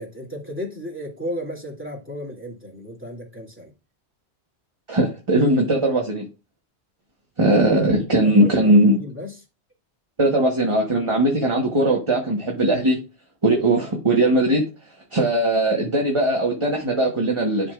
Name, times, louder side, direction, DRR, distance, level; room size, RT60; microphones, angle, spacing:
voice 1, 0.0-3.7 8.2-9.4, equal, 10° right, 2.7 m, -34 dB
voice 2, 4.9-6.3 7.4-9.0 10.2-13.0 13.4-14.7 15.1-17.7, right 1 dB, 30° right, 1.2 m, -19 dB
11.0 x 5.2 x 2.4 m
omnidirectional pair, 1.1 m